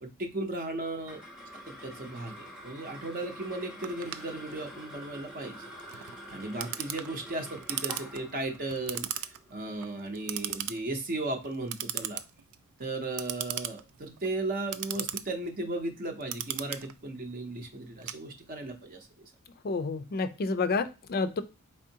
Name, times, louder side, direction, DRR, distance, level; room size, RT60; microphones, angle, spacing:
voice 1, 0.0-1.2 1.7-12.2 12.8-19.2, right 2 dB, 40° right, 4 dB, 0.7 m, -36 dB
sound 1, 0.8-11.4, equal, 5° right, 0.8 m, -47 dB
Clock, 3.8-18.8, right 11 dB, 80° right, 0.4 m, -39 dB
voice 2, 19.6-21.4, left 4 dB, 45° left, 11 dB, 0.4 m, -29 dB
4.4 x 3.6 x 2.7 m, 0.29 s
head